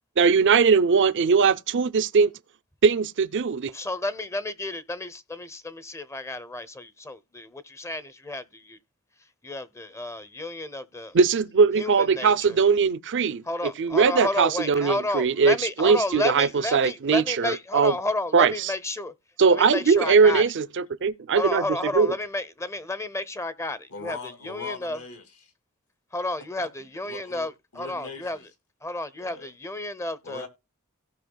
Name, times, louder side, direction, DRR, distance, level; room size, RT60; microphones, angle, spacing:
voice 1, 0.2-2.3 2.8-3.7 11.1-17.9 18.3-18.7 19.4-22.1, right 5 dB, 55° right, 0.6 m, -20 dB
voice 2, 3.7-8.8 9.4-11.1 11.8-12.6 13.5-19.1 19.5-20.4 21.3-25.0 26.1-28.4 28.8-30.5, left 2 dB, 15° left, 0.7 m, -31 dB
voice 3, 23.9-25.5 26.6-28.4 29.2-29.5 30.2-30.5, left 4 dB, 75° left, 2.7 m, -41 dB
17.0 x 5.9 x 2.3 m
head